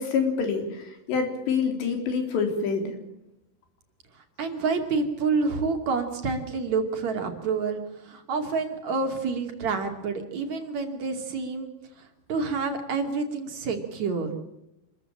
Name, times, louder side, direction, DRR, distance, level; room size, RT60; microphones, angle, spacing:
voice 1, 0.0-3.0, left 5 dB, 90° left, 4 dB, 5.9 m, -26 dB
voice 2, 4.4-11.7 12.3-14.4, right 4 dB, 45° right, 5 dB, 3.6 m, -28 dB
27.0 x 14.5 x 8.9 m, 0.88 s
omnidirectional pair, 4.9 m